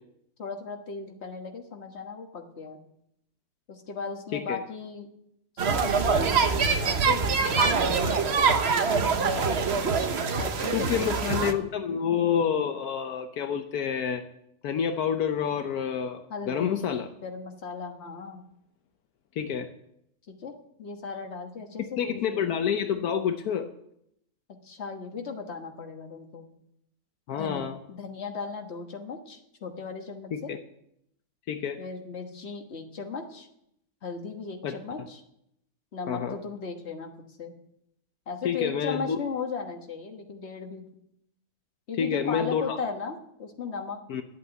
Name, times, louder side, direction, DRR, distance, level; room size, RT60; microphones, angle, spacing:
voice 1, 0.4-2.8 3.7-5.1 5.6-8.6 8.8-9.8 10.4-11.5 16.3-18.4 20.3-22.6 24.6-26.5 27.3-30.5 31.8-33.5 34.0-35.2 35.9-37.1 37.4-37.5 38.3-40.9 41.9-44.0, left 5 dB, 45° left, 3 dB, 1.7 m, -37 dB
sound 1, 5.6-11.5, right 5 dB, 45° right, 1.1 m, -24 dB
voice 2, 10.7-14.2 14.6-17.1 19.4-19.7 22.0-23.7 27.3-27.8 30.3-30.6 31.5-31.8 34.6-34.8 36.1-36.4 38.4-39.2 42.0-42.8 44.1-44.2, left 8 dB, 75° left, 7 dB, 1.3 m, -28 dB
11.5 x 8.5 x 8.2 m, 0.77 s
omnidirectional pair, 1.6 m